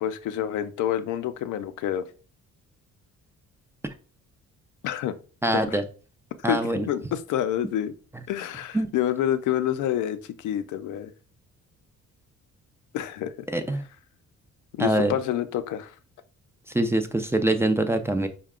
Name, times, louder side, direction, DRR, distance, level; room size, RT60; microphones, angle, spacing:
voice 1, 0.0-2.1 4.8-5.1 5.5-5.8 6.5-7.9 8.3-11.1 12.9-13.5 14.8-15.9, left 11 dB, 80° left, 10 dB, 0.5 m, -28 dB
voice 2, 5.4-5.8 6.4-6.8 8.7-8.9 13.5-13.8 14.8-15.1 16.7-18.3, right 1 dB, 10° right, 7 dB, 0.4 m, -24 dB
4.6 x 2.2 x 3.6 m, 0.37 s
cardioid pair, 90°, 30 cm